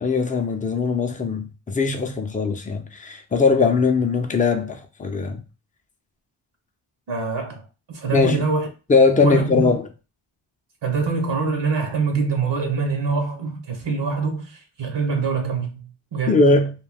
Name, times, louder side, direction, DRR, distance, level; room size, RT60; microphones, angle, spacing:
voice 1, 0.0-5.4 8.1-8.4 8.9-9.9 16.3-16.7, left 4 dB, 15° left, 0.5 m, -20 dB
voice 2, 7.1-8.7 9.2-9.7 10.8-16.4, right 4 dB, 60° right, 0.8 m, -25 dB
2.4 x 2.1 x 3.4 m
cardioid pair, 65°, 50 cm